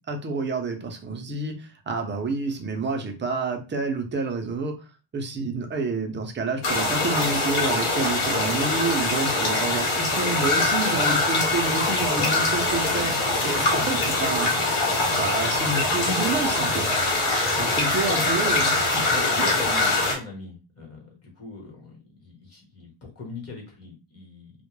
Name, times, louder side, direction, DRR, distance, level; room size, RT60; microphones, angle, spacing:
voice 1, 0.1-4.8 5.1-14.7 15.1-16.9 17.6-19.1, right 3 dB, 25° right, 4 dB, 0.4 m, -29 dB
sound 1, 6.6-20.1, left 2 dB, 85° left, 1.1 m, -23 dB
voice 2, 11.9-12.4 17.4-18.3 19.1-24.5, left 3 dB, 30° left, -2 dB, 1.0 m, -40 dB
2.2 x 2.1 x 3.0 m, 0.30 s
wide cardioid pair, 150°, 48 cm